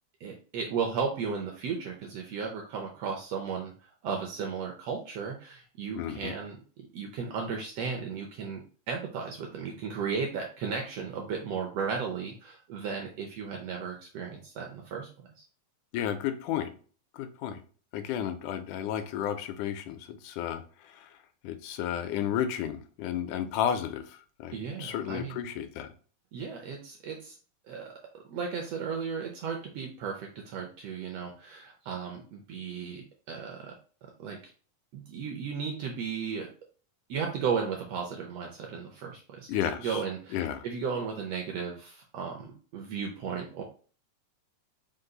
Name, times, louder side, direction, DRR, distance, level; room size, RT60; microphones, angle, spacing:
voice 1, 0.2-3.7 4.0-15.1 15.4-15.5 24.5-25.4 26.3-27.4 27.7-33.8 34.2-34.4 34.9-36.5 37.1-43.6, right 6 dB, 75° right, 1 dB, 1.5 m, -35 dB
voice 2, 5.9-6.3 15.9-16.7 17.1-17.6 17.9-21.1 21.4-25.9 39.5-40.0 40.3-40.7, left 10 dB, 85° left, 9 dB, 2.0 m, -32 dB
5.3 x 2.3 x 3.8 m, 0.40 s
omnidirectional pair, 3.5 m